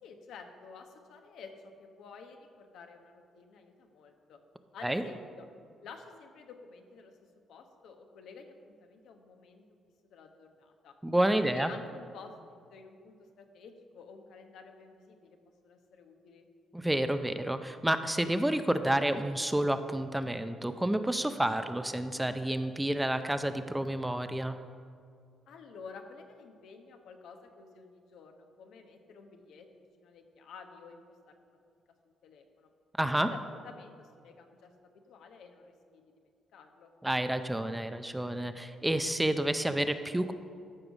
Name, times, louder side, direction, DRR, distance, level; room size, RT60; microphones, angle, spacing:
voice 1, 0.0-4.4 4.7-5.5 5.8-9.6 10.0-11.0 11.3-15.4 15.6-16.5 25.5-31.6 32.2-32.7 33.1-36.9, left 5 dB, 80° left, 5 dB, 1.1 m, -51 dB
voice 2, 11.0-11.7 16.7-24.6 33.0-33.3 37.0-40.3, right 1 dB, 5° right, 9 dB, 0.5 m, -29 dB
13.5 x 4.8 x 6.4 m, 2.3 s
cardioid pair, 90°, 0 cm